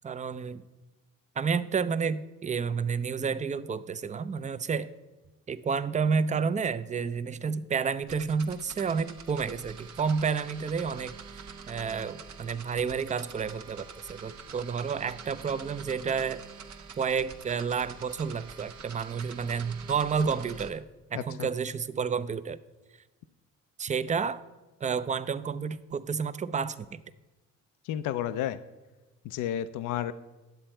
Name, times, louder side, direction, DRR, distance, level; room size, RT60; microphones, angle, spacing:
voice 1, 0.0-0.6 1.4-4.9 5.5-11.2 11.7-16.4 17.0-22.6 23.8-24.4 24.8-27.0, right 6 dB, 25° right, 15 dB, 0.5 m, -30 dB
sound 1, 8.0-20.7, right 6 dB, 70° right, 1.0 m, -46 dB
voice 2, 21.1-21.5 27.9-28.6 29.2-30.1, left 11 dB, 85° left, 13 dB, 0.5 m, -31 dB
10.5 x 7.7 x 4.3 m, 1.1 s
cardioid pair, 90°, 30 cm